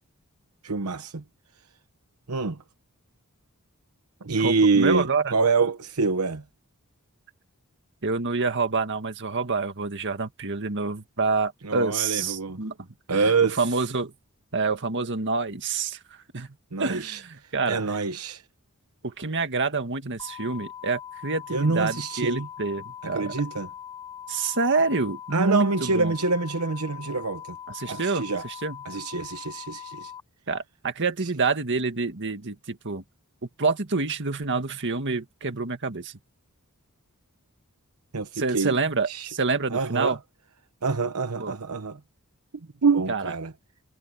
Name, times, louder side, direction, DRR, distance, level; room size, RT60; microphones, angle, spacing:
voice 1, 0.6-1.2 2.3-2.6 4.2-6.4 11.6-12.6 13.1-13.8 16.7-18.4 21.5-22.5 23.0-23.7 25.3-27.6 27.9-28.4 28.8-30.1 31.2-31.3 38.1-38.8 39.1-39.3 39.7-40.2 40.8-42.0 42.8-43.5, right 4 dB, 80° right, 1.0 m, -26 dB
voice 2, 4.4-5.3 8.0-12.9 13.1-13.3 13.6-14.1 14.5-16.0 16.3-16.5 16.8-17.8 19.0-23.3 24.3-26.1 27.7-28.8 30.5-33.0 33.6-36.1 38.4-40.2 41.4-41.6 43.1-43.3, right 4 dB, 55° right, 1.9 m, -27 dB
sound 1, 20.2-30.2, left 9 dB, 15° left, 4.0 m, -41 dB
head